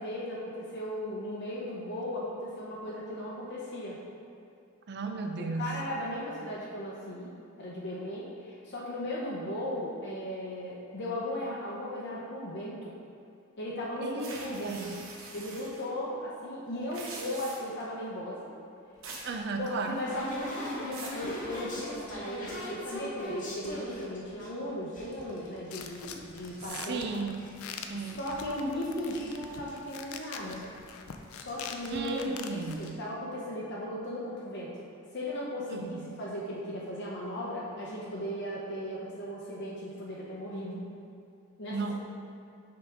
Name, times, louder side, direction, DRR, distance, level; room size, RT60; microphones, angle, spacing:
voice 1, 0.0-4.0 5.4-7.3 7.6-12.9 13.6-14.8 15.3-18.5 19.6-27.1 28.2-30.7 31.3-34.7 35.1-40.9 41.6-41.9, left 1 dB, 55° left, -5 dB, 0.8 m, -37 dB
voice 2, 4.9-5.9 14.0-14.3 14.6-15.0 19.2-20.0 26.7-27.5 27.9-28.2 31.8-33.0 35.7-36.1 41.7-41.9, right 4 dB, 55° right, 5 dB, 0.5 m, -35 dB
sound 1, 14.2-15.8 16.8-17.8 19.0-19.3 19.7-20.2 20.6-21.2, right 3 dB, 70° right, 0.9 m, -44 dB
sound 2, 19.0-24.5 24.9-26.7 27.0-27.7 28.0-29.4 29.7-29.8 30.0-30.3 30.6-30.7 31.5-31.6 31.8-32.1 32.6-32.9, left 1 dB, 40° left, 1.1 m, -41 dB
sound 3, 25.7-32.9, left 6 dB, 80° left, 0.4 m, -45 dB
5.8 x 5.1 x 3.5 m, 2.6 s
head